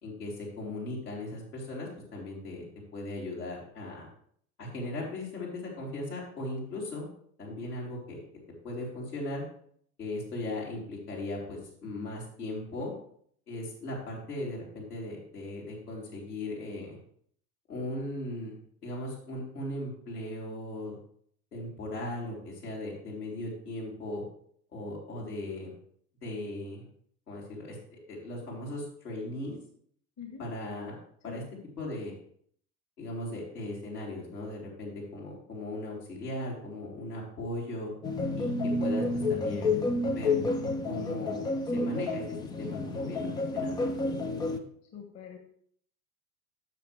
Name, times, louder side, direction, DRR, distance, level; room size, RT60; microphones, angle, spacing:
voice 1, 0.0-2.7 2.9-4.1 4.6-7.1 7.4-8.2 8.6-9.4 10.0-12.9 13.5-17.0 17.7-18.5 18.8-20.9 21.5-24.2 24.7-25.7 26.2-26.8 27.3-29.5 30.4-30.9 31.2-31.4 31.8-32.1 33.0-37.9 38.3-40.4 40.9-41.5 41.7-43.8, left 1 dB, 75° left, -4 dB, 3.6 m, -38 dB
sound 1, 38.0-44.6, left 2 dB, 10° left, 0.4 m, -30 dB
voice 2, 44.9-45.4, left 8 dB, 35° left, 4 dB, 1.5 m, -44 dB
13.5 x 6.3 x 3.3 m, 0.62 s
figure-of-eight pair, 75°, 46 cm